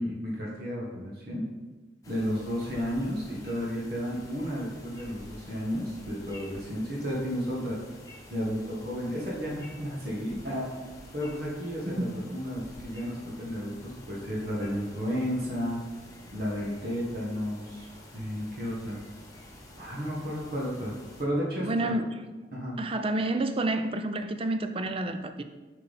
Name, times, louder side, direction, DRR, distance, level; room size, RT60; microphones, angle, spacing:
voice 1, 0.0-1.5 2.1-7.8 8.3-10.7 11.1-15.8 16.3-17.9 18.1-19.0 19.8-20.9 21.2-21.9 22.5-22.8, equal, 60° right, -4 dB, 1.5 m, -32 dB
sound 1, 2.0-21.2, left 1 dB, 20° left, 1.1 m, -49 dB
voice 2, 21.6-22.3 22.8-25.4, right 2 dB, 30° right, 8 dB, 0.5 m, -29 dB
7.0 x 5.6 x 4.2 m, 1.2 s
head